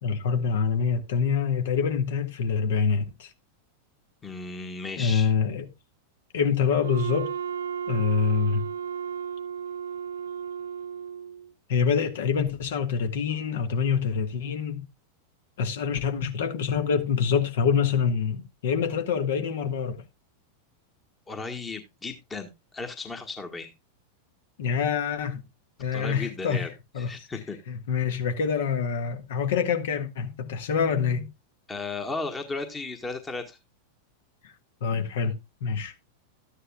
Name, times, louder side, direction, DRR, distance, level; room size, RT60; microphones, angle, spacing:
voice 1, 0.0-3.3 5.0-5.7 6.3-7.3 7.9-8.6 11.7-14.9 15.6-20.0 24.6-25.4 25.8-26.7 26.9-27.1 27.7-31.3 34.4-34.5 34.8-35.9, left 6 dB, 55° left, 1.5 m, -26 dB
voice 2, 4.2-5.3 21.3-23.7 25.9-26.7 27.0-27.6 31.7-33.6, left 3 dB, 15° left, 1.4 m, -35 dB
Wind instrument woodwind instrument, 6.8-11.5, right 8 dB, 60° right, 0.7 m, -34 dB
13.5 x 9.8 x 2.3 m
figure-of-eight pair, 90°, 0 cm